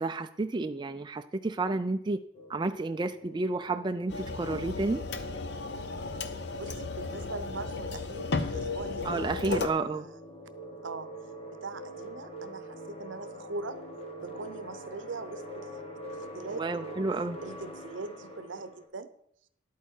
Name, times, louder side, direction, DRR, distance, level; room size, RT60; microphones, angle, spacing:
voice 1, 0.0-2.2 2.5-5.0 9.1-10.0 16.6-17.4, right 3 dB, 25° right, 7 dB, 0.4 m, -31 dB
sound 1, 2.3-18.9, right 1 dB, 30° left, 1.7 m, -45 dB
sound 2, 4.1-9.7, left 4 dB, 60° left, 0.8 m, -34 dB
voice 2, 6.6-10.2 10.8-11.1 11.5-13.8 14.2-17.1 17.4-19.1, right 3 dB, 75° right, 12 dB, 0.8 m, -42 dB
11.0 x 8.4 x 4.5 m, 0.71 s
head